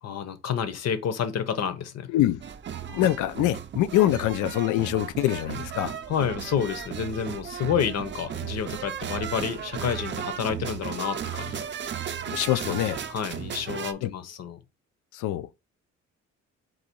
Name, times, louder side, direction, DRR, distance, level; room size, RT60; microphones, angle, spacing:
voice 1, 0.0-2.1 6.1-11.7 12.7-12.8 13.1-14.6, left 8 dB, 55° left, 0.8 m, -29 dB
voice 2, 2.1-2.4 2.9-6.0 12.3-13.0 14.0-14.1 15.1-15.6, left 14 dB, 80° left, 0.5 m, -24 dB
sound 1, 2.4-13.9, right 9 dB, 40° right, 0.5 m, -35 dB
4.0 x 2.6 x 4.4 m
cardioid pair, 90°, 30 cm